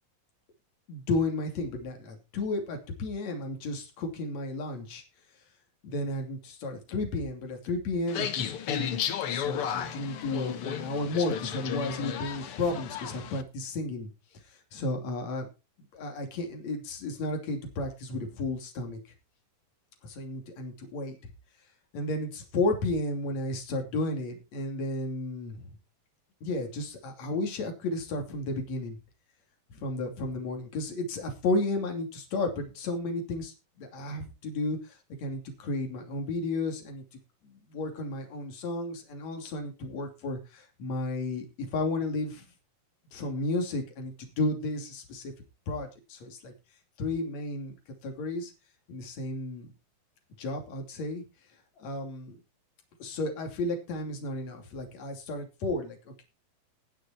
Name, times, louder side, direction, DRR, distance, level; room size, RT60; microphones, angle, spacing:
voice 1, 0.9-5.0 5.8-8.9 9.3-14.1 14.7-15.5 15.9-19.0 20.0-21.2 21.9-25.7 26.4-29.0 29.7-34.8 35.2-37.0 37.4-42.5 43.1-45.3 45.7-46.5 47.0-47.7 48.0-48.5 48.9-49.7 50.4-51.2 51.8-52.4 53.0-56.2, left 2 dB, 50° left, 3 dB, 3.9 m, -33 dB
sound 1, 8.1-13.4, left 9 dB, 70° left, 1.3 m, -34 dB
19.5 x 6.7 x 4.4 m, 0.29 s
omnidirectional pair, 4.2 m